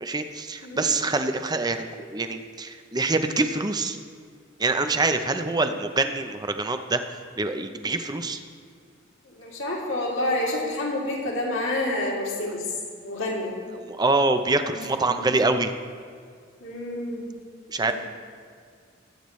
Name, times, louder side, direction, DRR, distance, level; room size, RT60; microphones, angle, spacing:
voice 1, 0.0-4.0 4.6-8.4 13.7-15.7 17.7-17.9, right 3 dB, 20° right, 8 dB, 0.6 m, -25 dB
voice 2, 9.4-12.6 13.0-13.5 14.7-15.3 16.6-17.3 17.8-17.9, left 1 dB, 75° left, -3 dB, 2.7 m, -29 dB
21.5 x 8.6 x 3.2 m, 2.1 s
head